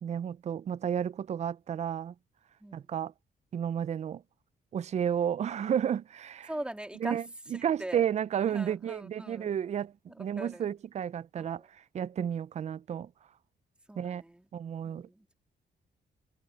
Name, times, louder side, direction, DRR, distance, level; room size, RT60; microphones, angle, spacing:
voice 1, 0.0-2.1 2.7-3.1 3.5-4.2 4.7-6.5 7.0-7.2 7.5-9.9 10.2-11.6 11.9-13.1 14.0-14.2 14.5-15.1, right 9 dB, 40° right, 0.4 m, -32 dB
voice 2, 2.6-2.9 6.5-7.2 7.5-8.0 8.5-9.5 10.1-10.6 11.4-11.7 13.9-14.5 14.8-15.3, right 1 dB, 5° right, 2.3 m, -42 dB
cardioid pair, 125°, 18 cm